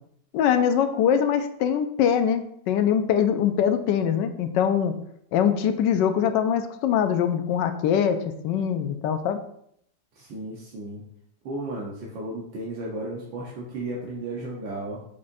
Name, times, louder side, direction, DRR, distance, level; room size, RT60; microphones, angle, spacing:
voice 1, 0.3-5.0 5.3-9.4, left 8 dB, 75° left, 9 dB, 1.2 m, -23 dB
voice 2, 10.1-11.0 11.4-15.0, right 2 dB, 80° right, -3 dB, 1.7 m, -34 dB
6.7 x 5.4 x 2.6 m, 0.70 s
omnidirectional pair, 2.0 m